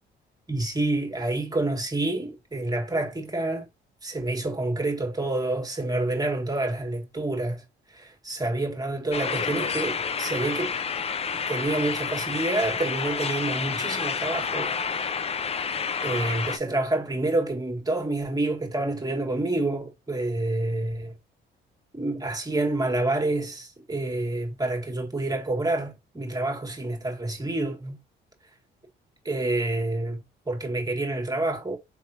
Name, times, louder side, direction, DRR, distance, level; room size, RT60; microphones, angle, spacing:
voice 1, 0.5-3.7 4.0-10.7 11.5-14.7 16.0-21.1 21.9-28.0 29.2-31.8, right 2 dB, 20° right, 1.6 m, -28 dB
sound 1, 9.1-16.6, left 6 dB, 30° left, 0.5 m, -29 dB
4.5 x 3.5 x 2.8 m
cardioid pair, 90°, 20 cm